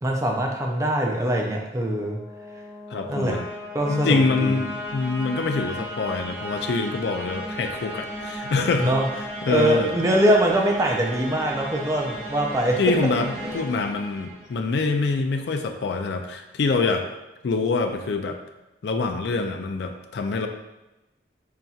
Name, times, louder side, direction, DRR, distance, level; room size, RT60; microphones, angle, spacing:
voice 1, 0.0-2.2 3.1-3.4 3.7-4.5 8.8-9.1 9.5-12.8 13.4-13.6, right 1 dB, 20° right, 0 dB, 0.5 m, -23 dB
sound 1, 1.8-14.8, equal, ahead, 1.2 m, -35 dB
voice 2, 2.9-3.5 3.9-8.9 9.4-9.9 12.8-17.1 17.4-18.4 18.8-20.5, left 3 dB, 65° left, 5 dB, 0.4 m, -25 dB
5.6 x 2.6 x 2.3 m, 0.98 s
head